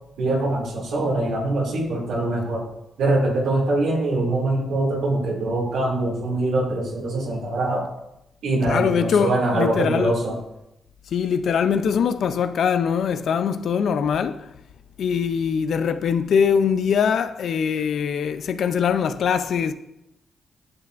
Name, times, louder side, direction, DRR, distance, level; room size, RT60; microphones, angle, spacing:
voice 1, 0.2-2.6 3.0-7.9 8.4-10.4, right 2 dB, 85° right, 2.2 m, -23 dB
voice 2, 8.6-10.1 11.1-14.4 15.0-19.7, left 7 dB, 75° left, 0.4 m, -22 dB
10.5 x 5.8 x 2.5 m
cardioid pair, 70°, 0 cm